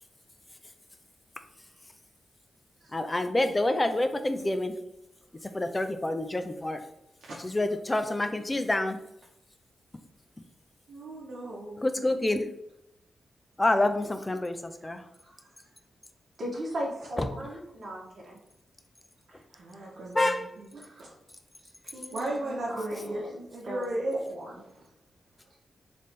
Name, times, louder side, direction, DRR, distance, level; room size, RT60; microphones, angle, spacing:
voice 1, 1.6-1.9 2.8-2.9 15.2-15.7 16.4-18.4 19.3-19.9 20.7-21.1 21.9-23.9 24.1-24.6, equal, 50° right, -5 dB, 1.4 m, -39 dB
voice 2, 2.9-4.7 5.5-6.8 7.4-9.0 11.8-12.5 13.6-15.0 17.2-17.3 20.1-20.5, left 2 dB, 20° left, 8 dB, 0.5 m, -27 dB
voice 3, 10.9-11.9 19.6-20.7 21.0-21.1 22.1-24.2, right 1 dB, 80° right, -5 dB, 0.9 m, -35 dB
3.4 x 3.2 x 4.1 m, 0.84 s
cardioid pair, 95°, 0 cm